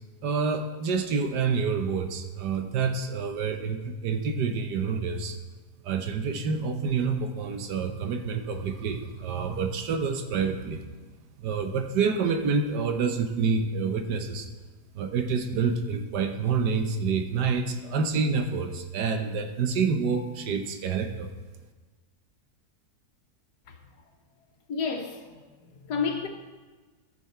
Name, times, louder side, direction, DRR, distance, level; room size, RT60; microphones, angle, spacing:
voice 1, 0.2-5.4 5.8-10.8 11.4-14.5 14.9-21.3, right 5 dB, 80° right, 1.4 m, -28 dB
voice 2, 24.7-25.4 25.7-26.3, left 5 dB, 70° left, 1.7 m, -30 dB
14.5 x 6.9 x 4.4 m
omnidirectional pair, 1.8 m